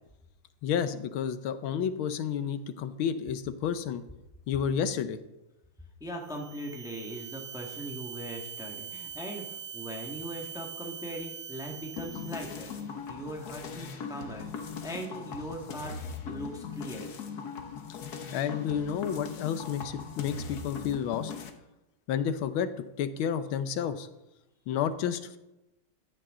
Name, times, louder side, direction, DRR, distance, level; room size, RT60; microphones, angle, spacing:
voice 1, 0.6-4.0 4.5-5.2 17.9-18.0 18.3-21.3 22.1-22.7 23.0-24.1 24.7-25.4, left 8 dB, 75° left, 11 dB, 1.6 m, -30 dB
voice 2, 6.0-12.7 13.1-15.9 16.2-17.1, right 1 dB, ahead, 0 dB, 1.4 m, -40 dB
sound 1, 6.2-12.8, right 8 dB, 75° right, 1.9 m, -43 dB
sound 2, 12.0-21.5, left 6 dB, 55° left, 1.4 m, -40 dB
15.0 x 10.0 x 3.8 m, 0.95 s
omnidirectional pair, 2.3 m